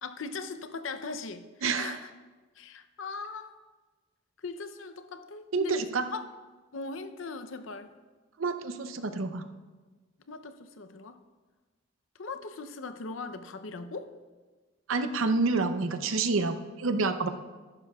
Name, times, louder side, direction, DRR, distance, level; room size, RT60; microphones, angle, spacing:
voice 1, 0.0-1.4 1.7-2.1 2.6-3.6 4.4-5.8 6.1-6.2 6.7-7.9 10.3-11.2 12.2-14.1, left 4 dB, 70° left, 10 dB, 0.7 m, -39 dB
voice 2, 1.6-2.0 5.5-6.1 8.4-9.5 14.9-17.3, right 3 dB, 75° right, 9 dB, 0.7 m, -28 dB
14.0 x 11.5 x 2.4 m, 1.3 s
head